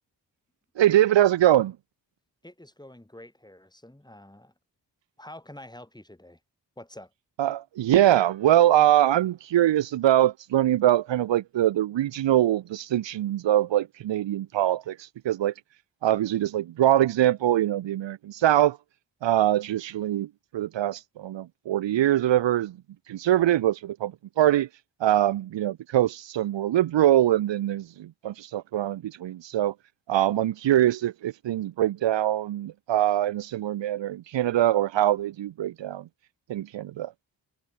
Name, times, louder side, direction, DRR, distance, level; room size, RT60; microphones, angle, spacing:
voice 1, 0.8-1.8 7.4-15.5 16.0-18.8 19.2-20.3 20.5-22.8 23.1-24.7 25.0-29.7 30.1-36.1 36.5-37.1, right 12 dB, 80° right, 0.7 m, -23 dB
voice 2, 2.4-4.5 5.2-6.4 6.8-7.1, left 1 dB, 10° left, 5.7 m, -47 dB
cardioid pair, 80°, 43 cm